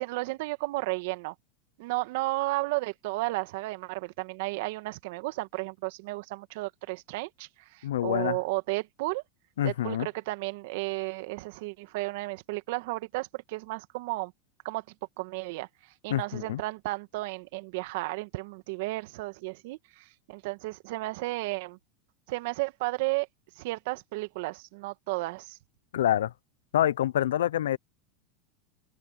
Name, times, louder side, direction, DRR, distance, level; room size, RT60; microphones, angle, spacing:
voice 1, 0.0-1.3 1.8-9.2 9.6-14.3 14.6-14.8 15.2-21.8 22.3-23.3 23.6-25.6, right 22 dB, 65° right, 2.0 m, -33 dB
voice 2, 7.8-8.4 9.6-10.1 16.1-16.6 25.9-26.3 26.7-27.8, left 12 dB, 85° left, 0.7 m, -26 dB
open air
hypercardioid pair, 105°, 0 cm